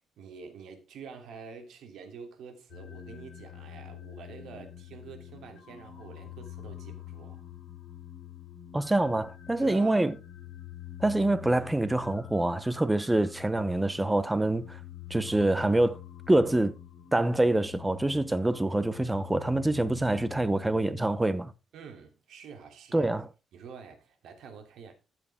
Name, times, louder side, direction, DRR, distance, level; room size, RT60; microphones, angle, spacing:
voice 1, 0.2-7.4 9.6-10.1 21.7-23.1 23.5-24.9, right 6 dB, 70° right, 2.9 m, -47 dB
sound 1, 2.7-21.4, left 11 dB, 50° left, 7.0 m, -46 dB
voice 2, 8.7-10.2 11.0-14.8 15.1-16.0 16.3-16.7 17.1-21.5 22.9-23.3, right 2 dB, 10° right, 0.8 m, -26 dB
14.0 x 7.7 x 3.6 m
cardioid pair, 160°, 0 cm